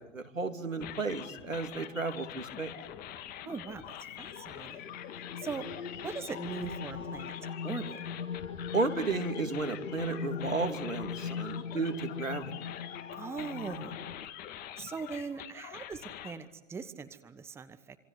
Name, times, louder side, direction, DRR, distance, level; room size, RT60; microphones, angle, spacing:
voice 1, 0.0-2.7 8.7-12.5, right 3 dB, 85° right, 6 dB, 3.0 m, -33 dB
sound 1, 0.8-16.3, left 11 dB, 25° left, 1.9 m, -45 dB
voice 2, 3.4-5.0 5.4-5.7 6.0-8.0 13.1-14.0 14.8-18.0, right 5 dB, 5° right, 12 dB, 1.1 m, -41 dB
sound 2, 4.1-14.3, left 6 dB, 75° left, 1.4 m, -40 dB
27.0 x 26.5 x 8.3 m, 0.95 s
figure-of-eight pair, 120°, 38 cm